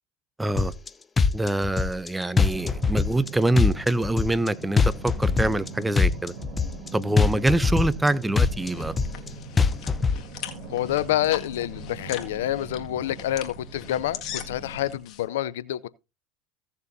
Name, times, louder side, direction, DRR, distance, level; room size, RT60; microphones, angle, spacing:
voice 1, 0.4-0.7 1.3-6.3 6.9-9.0, right 1 dB, 10° right, 0.7 m, -25 dB
sound 1, 0.6-0.9 1.2-2.1 2.4-3.3 3.6-4.5 4.8-5.7 6.0-6.9 7.2-8.1 8.4-9.3 9.6-10.2, left 5 dB, 20° left, 0.7 m, -22 dB
sound 2, 2.5-15.0, right 4 dB, 55° right, 3.4 m, -42 dB
sound 3, 8.1-15.2, left 10 dB, 55° left, 1.9 m, -41 dB
voice 2, 10.7-15.9, left 13 dB, 85° left, 0.5 m, -27 dB
16.5 x 6.8 x 2.7 m
hypercardioid pair, 95°, 0 cm